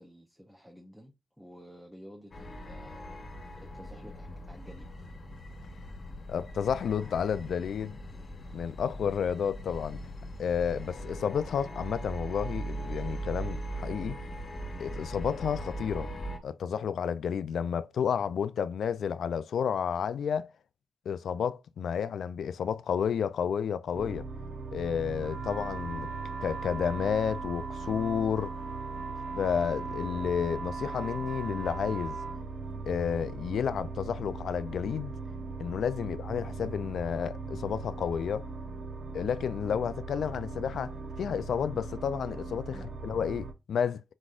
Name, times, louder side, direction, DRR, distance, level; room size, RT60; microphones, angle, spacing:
voice 1, 0.0-3.2 3.6-4.9 36.0-36.1 42.7-42.9, equal, ahead, 0.6 m, -51 dB
sound 1, 2.3-16.4, right 1 dB, 45° left, 1.2 m, -40 dB
voice 2, 6.3-8.0 8.5-10.0 10.4-14.2 14.8-16.1 16.4-20.5 21.1-24.2 24.7-26.1 26.4-28.5 29.3-32.2 32.9-35.1 35.6-38.5 39.1-42.8 43.0-44.0, left 7 dB, 75° left, 0.3 m, -31 dB
sound 2, 23.9-43.5, right 3 dB, 50° right, 0.8 m, -40 dB
sound 3, 25.2-32.4, right 4 dB, 85° right, 0.8 m, -40 dB
4.8 x 4.1 x 2.4 m
cardioid pair, 110°, 0 cm